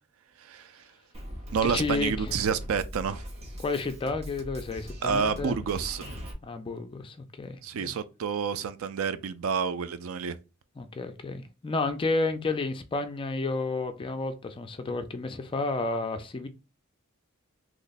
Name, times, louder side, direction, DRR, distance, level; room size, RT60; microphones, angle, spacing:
voice 1, 0.4-0.8 1.5-3.2 5.0-6.0 7.6-10.4, right 6 dB, 70° right, 0.4 m, -29 dB
Drum kit, 1.1-6.3, equal, 30° right, 0.8 m, -40 dB
voice 2, 1.6-2.4 3.6-5.6 6.4-7.9 10.8-16.5, left 3 dB, 25° left, 0.4 m, -31 dB
3.0 x 2.1 x 4.0 m
head